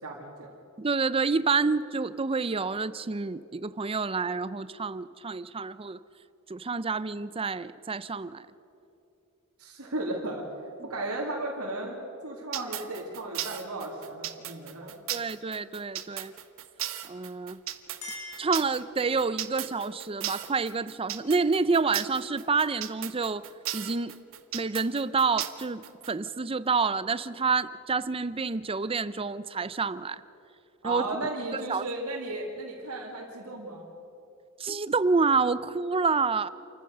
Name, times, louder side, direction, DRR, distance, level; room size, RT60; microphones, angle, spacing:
voice 1, 0.0-0.5 9.6-10.4 10.8-14.9 30.8-33.8, right 2 dB, 80° right, -3 dB, 2.9 m, -35 dB
voice 2, 0.8-6.0 6.5-8.4 15.1-16.3 17.1-17.6 18.4-23.4 23.7-24.1 24.5-30.2 30.8-31.0 31.5-31.8 34.6-36.5, right 4 dB, 25° right, 16 dB, 0.5 m, -28 dB
sound 1, 12.5-26.1, right 12 dB, 65° right, 1.1 m, -35 dB
Chink clink, 17.5-19.3, left 2 dB, 75° left, 6.3 m, -45 dB
28.5 x 15.0 x 6.7 m, 2.8 s
head